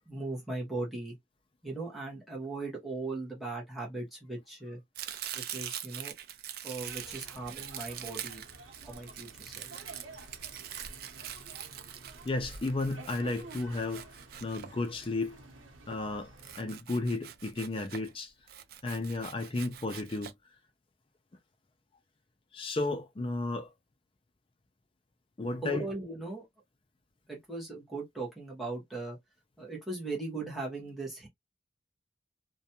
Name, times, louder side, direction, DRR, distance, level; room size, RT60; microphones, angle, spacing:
voice 1, 0.1-1.2 1.6-4.8 5.3-6.1 6.6-8.4 8.8-9.7 25.6-26.4 27.3-29.2 29.6-31.3, right 2 dB, ahead, 0.9 m, -38 dB
Domestic sounds home sounds, 5.0-15.2 16.4-18.1 18.5-20.3, right 10 dB, 50° right, 0.3 m, -43 dB
sound 1, 6.7-16.6, right 2 dB, 85° right, 0.8 m, -51 dB
voice 2, 12.2-14.1 14.4-15.4 15.9-16.3 16.6-18.3 18.8-20.3 22.5-23.7 25.4-25.9, left 2 dB, 25° left, 0.4 m, -33 dB
2.5 x 2.2 x 2.8 m
head